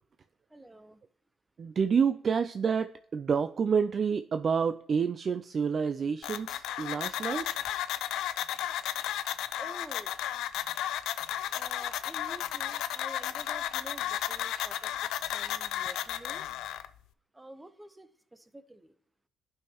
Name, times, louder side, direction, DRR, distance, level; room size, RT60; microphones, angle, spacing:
voice 1, 0.5-1.0 9.6-10.1 11.5-16.5 17.3-18.9, right 1 dB, 10° right, 12 dB, 0.7 m, -48 dB
voice 2, 1.6-7.5, right 6 dB, 45° right, 10 dB, 0.3 m, -28 dB
sound 1, 6.2-16.9, left 12 dB, 85° left, 0.4 m, -34 dB
12.0 x 5.5 x 2.9 m, 0.64 s
cardioid pair, 90°, 0 cm